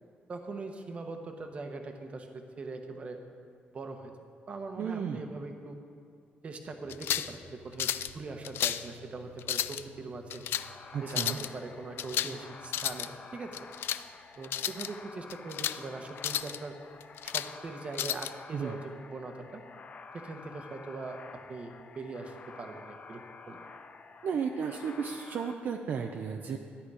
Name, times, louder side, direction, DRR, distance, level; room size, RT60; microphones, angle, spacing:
voice 1, 0.3-3.2 3.7-4.1 4.5-5.8 6.4-10.5 11.0-13.6 14.4-16.8 17.2-19.6 20.1-23.2 23.5-23.7, right 3 dB, 35° right, 4 dB, 1.1 m, -41 dB
voice 2, 4.8-5.3 10.9-11.4 18.5-18.8 24.2-26.6, right 6 dB, 55° right, 3 dB, 0.7 m, -34 dB
sound 1, 6.7-15.5, right 4 dB, 15° left, 2.2 m, -58 dB
sound 2, 6.9-7.3 7.8-8.1 8.4-8.9 9.4-9.8 10.3-10.7 11.1-11.5 12.0-12.4 12.6-13.1 13.5-14.0 14.4-14.9 15.3-15.8 16.2-16.6 17.0-17.5 18.0-18.3, left 11 dB, 75° left, 0.4 m, -32 dB
sound 3, 10.5-25.5, left 4 dB, 40° left, 0.7 m, -50 dB
13.5 x 9.9 x 4.9 m, 2.4 s
cardioid pair, 145°, 4 cm